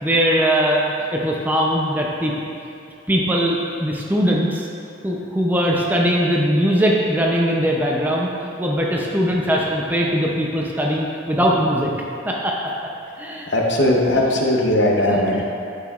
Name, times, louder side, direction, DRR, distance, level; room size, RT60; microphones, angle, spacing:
voice 1, 0.0-2.3 3.1-4.7 5.0-8.3 8.6-11.9 12.2-12.7 13.2-13.5 14.1-14.2 15.0-15.4, equal, 10° right, -2 dB, 0.5 m, -20 dB
voice 2, 13.5-15.4, left 1 dB, 60° left, -1 dB, 0.8 m, -18 dB
8.6 x 6.1 x 2.4 m, 2.6 s
head